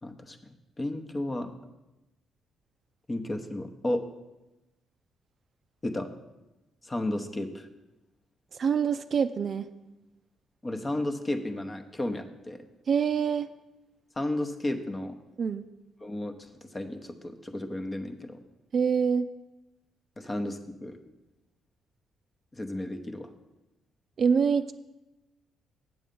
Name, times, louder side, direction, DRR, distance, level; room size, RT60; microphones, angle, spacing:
voice 1, 0.0-0.4 0.8-1.5 3.1-4.1 5.8-6.1 6.8-7.7 10.6-12.6 14.2-15.2 16.0-18.4 20.2-21.0 22.5-23.3, left 1 dB, 20° left, 6 dB, 0.9 m, -33 dB
voice 2, 8.5-9.7 12.9-13.5 15.4-15.7 18.7-19.3 24.2-24.7, right 6 dB, 50° right, 10 dB, 0.4 m, -25 dB
7.7 x 7.1 x 5.3 m, 1.0 s
cardioid pair, 90°, 0 cm